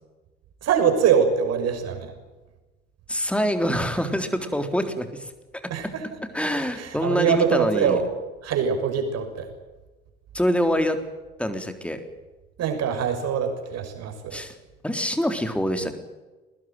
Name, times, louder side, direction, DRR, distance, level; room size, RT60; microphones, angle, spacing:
voice 1, 0.6-2.1 5.7-6.0 6.7-8.0 8.4-9.5 12.6-14.4, right 7 dB, 45° right, 5 dB, 6.4 m, -23 dB
voice 2, 3.1-5.6 6.3-8.0 10.3-11.0 11.4-12.0 14.3-14.5 14.8-15.9, equal, 5° left, 8 dB, 3.8 m, -25 dB
23.0 x 20.0 x 9.2 m, 1.2 s
figure-of-eight pair, 60°, 34 cm